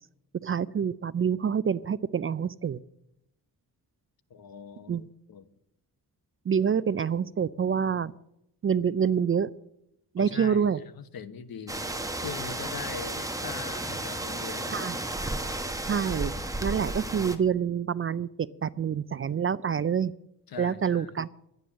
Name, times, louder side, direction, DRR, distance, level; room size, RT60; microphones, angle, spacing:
voice 1, 0.4-2.8 4.9-5.0 6.5-8.1 8.6-9.5 10.1-10.8 14.7-15.0 15.8-16.3 16.6-20.1 20.6-21.3, right 7 dB, 35° right, 17 dB, 0.4 m, -27 dB
voice 2, 4.3-5.5 10.2-10.6 11.0-14.9 20.5-21.1, left 6 dB, 65° left, 12 dB, 1.1 m, -41 dB
sound 1, 11.7-17.4, right 2 dB, 10° right, 1.2 m, -33 dB
11.5 x 9.5 x 7.3 m, 0.83 s
cardioid pair, 105°, 38 cm